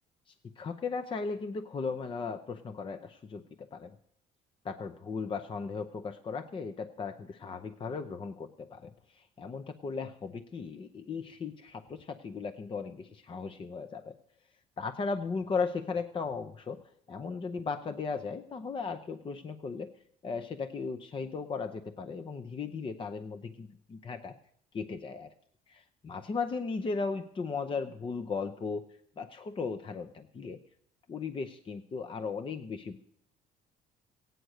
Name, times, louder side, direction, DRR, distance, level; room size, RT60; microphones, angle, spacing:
voice 1, 0.6-4.0 4.6-14.2 14.8-16.8 17.1-19.9 20.2-24.4 24.7-25.3 26.0-28.9 29.2-30.6 31.1-33.0, left 4 dB, 30° left, 8 dB, 0.7 m, -36 dB
15.5 x 9.3 x 6.5 m, 0.68 s
cardioid pair, 110°, 17 cm